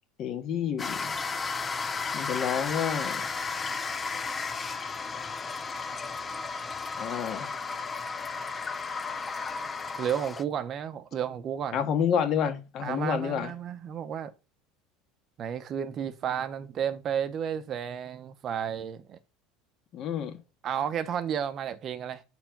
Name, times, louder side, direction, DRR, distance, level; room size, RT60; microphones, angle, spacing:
voice 1, 0.2-1.1 2.1-3.3 7.0-7.5 11.7-13.5 19.9-20.4, left 8 dB, 45° left, 1.6 m, -29 dB
sound 1, 0.8-10.4, left 4 dB, 20° left, 0.6 m, -34 dB
voice 2, 10.0-11.8 12.8-14.3 15.4-19.2 20.6-22.2, right 8 dB, 40° right, 0.8 m, -32 dB
6.4 x 4.5 x 5.9 m
supercardioid pair, 130°, 0 cm